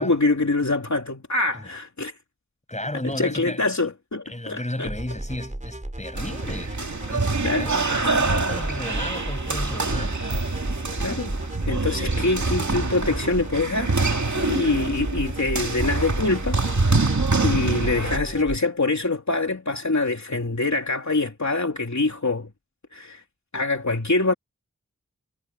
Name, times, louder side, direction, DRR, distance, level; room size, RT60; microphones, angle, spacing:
voice 1, 0.0-2.1 3.0-4.9 7.4-7.6 11.0-11.4 11.7-14.0 14.3-16.6 16.8-17.0 17.4-22.5 22.9-23.2 23.5-24.3, left 2 dB, 60° left, 3.2 m, -24 dB
voice 2, 2.7-3.7 4.3-6.8 7.1-10.2, left 1 dB, 20° left, 7.1 m, -34 dB
sound 1, 4.9-18.6, right 1 dB, 25° right, 4.8 m, -34 dB
sound 2, 6.2-18.2, right 3 dB, 65° right, 2.4 m, -25 dB
wide cardioid pair, 55°, 31 cm